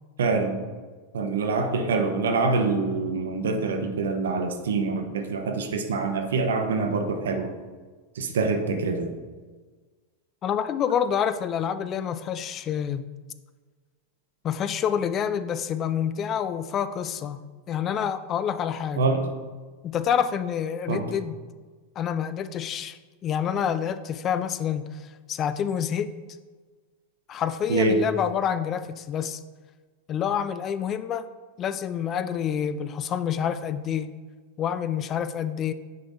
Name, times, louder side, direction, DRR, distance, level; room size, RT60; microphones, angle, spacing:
voice 1, 0.2-0.6 1.1-7.5 8.2-9.1 19.0-19.2 20.9-21.0 27.7-28.0, right 3 dB, 65° right, 4 dB, 0.9 m, -25 dB
voice 2, 10.4-13.1 14.4-17.4 17.7-19.1 19.8-21.4 22.0-26.1 27.3-29.4 30.1-31.3 31.6-34.1 34.6-35.7, left 8 dB, 30° left, 13 dB, 0.4 m, -27 dB
9.4 x 3.4 x 4.0 m, 1.4 s
figure-of-eight pair, 90°, 0 cm